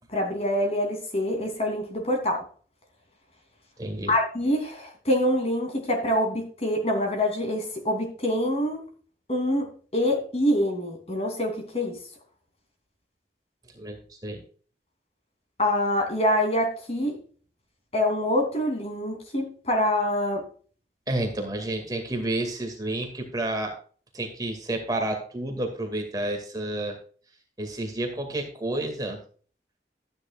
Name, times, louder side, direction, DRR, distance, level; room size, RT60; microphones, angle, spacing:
voice 1, 0.1-2.4 4.1-8.8 9.3-12.0 15.6-17.2 17.9-20.4, left 1 dB, 35° left, 3 dB, 3.0 m, -25 dB
voice 2, 3.8-4.1 13.7-14.4 21.1-23.8 24.1-27.0 27.6-29.2, right 1 dB, 20° right, 3 dB, 2.1 m, -30 dB
13.0 x 9.6 x 2.4 m, 0.42 s
head